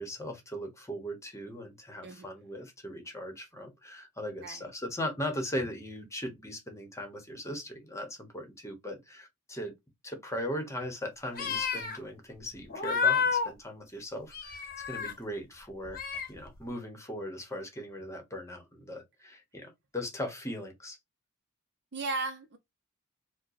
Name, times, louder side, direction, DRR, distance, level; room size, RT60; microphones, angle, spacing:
voice 1, 0.0-9.7 10.0-16.0 16.3-21.0, equal, 15° left, 1.0 m, -39 dB
sound 1, 11.3-12.0 12.7-13.5 14.3-15.1 15.9-16.4, left 6 dB, 40° left, 0.8 m, -30 dB
voice 2, 21.9-22.6, right 3 dB, 50° right, 0.7 m, -35 dB
4.4 x 2.2 x 2.5 m
head